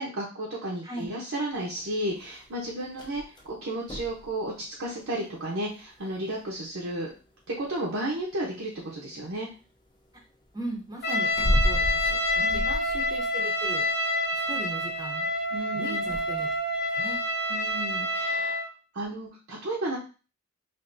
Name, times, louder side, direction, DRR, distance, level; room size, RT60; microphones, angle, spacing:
voice 1, 0.0-3.2 3.5-7.1 7.5-9.5 12.4-12.7 15.5-16.0 17.5-18.6 18.9-20.0, right 1 dB, 75° right, -4 dB, 0.8 m, -33 dB
sound 1, 1.5-18.2, equal, 20° left, 0.5 m, -37 dB
voice 2, 10.5-13.9 14.3-15.3 15.7-16.5 16.9-17.2, right 2 dB, 20° right, -1 dB, 0.7 m, -38 dB
Trumpet, 11.0-18.7, left 1 dB, 55° left, 0.8 m, -28 dB
3.4 x 2.5 x 2.6 m, 0.33 s
head